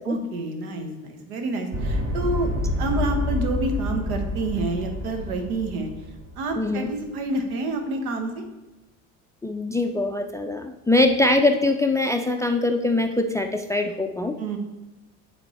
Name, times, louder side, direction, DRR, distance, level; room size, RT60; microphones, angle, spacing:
voice 1, 0.0-2.5 2.8-5.9 6.4-8.4 14.4-14.6, right 2 dB, 80° right, 5 dB, 1.1 m, -28 dB
sound 1, 1.7-6.9, left 1 dB, 30° right, 1.2 m, -28 dB
voice 2, 6.6-6.9 9.4-14.4, left 2 dB, 10° left, 6 dB, 0.3 m, -22 dB
8.9 x 3.5 x 4.2 m, 1.1 s
hypercardioid pair, 65°, 43 cm